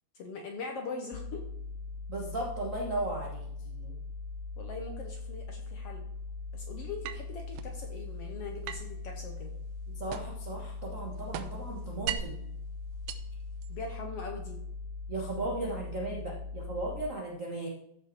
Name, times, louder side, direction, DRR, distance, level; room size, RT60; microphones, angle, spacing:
voice 1, 0.2-1.5 4.6-6.1 6.5-9.5 13.7-14.6, left 3 dB, 65° left, 3 dB, 1.6 m, -41 dB
sound 1, 1.1-17.1, left 3 dB, 90° left, 2.3 m, -41 dB
voice 2, 2.1-3.9 9.9-12.5 15.1-17.7, right 2 dB, 70° right, -2 dB, 0.7 m, -36 dB
sound 2, 7.0-7.8 8.7-10.5 10.8-12.5 12.9-14.0, right 10 dB, 85° right, 2.4 m, -40 dB
13.5 x 5.6 x 4.6 m, 0.75 s
omnidirectional pair, 3.9 m